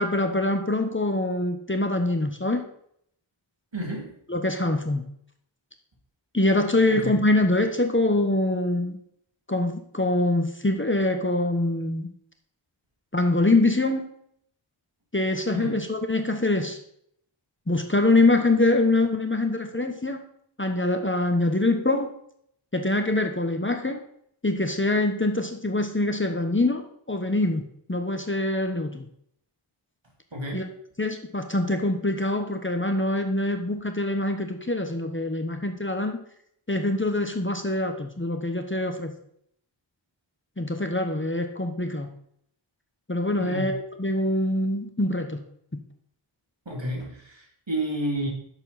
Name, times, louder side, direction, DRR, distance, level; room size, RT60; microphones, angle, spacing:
voice 1, 0.0-2.6 4.3-5.0 6.3-9.0 9.5-12.1 13.1-14.1 15.1-16.8 17.7-20.2 20.6-22.1 22.7-24.0 24.4-29.1 30.5-30.6 31.0-36.2 36.7-39.1 40.6-42.1 43.1-45.4, left 2 dB, 25° left, 5 dB, 1.1 m, -24 dB
voice 2, 3.7-4.1 6.9-7.2 15.5-15.8 30.3-30.6 43.4-43.7 46.6-48.3, right 1 dB, 65° right, -1 dB, 3.2 m, -31 dB
11.0 x 7.2 x 4.2 m, 0.68 s
wide cardioid pair, 45°, 49 cm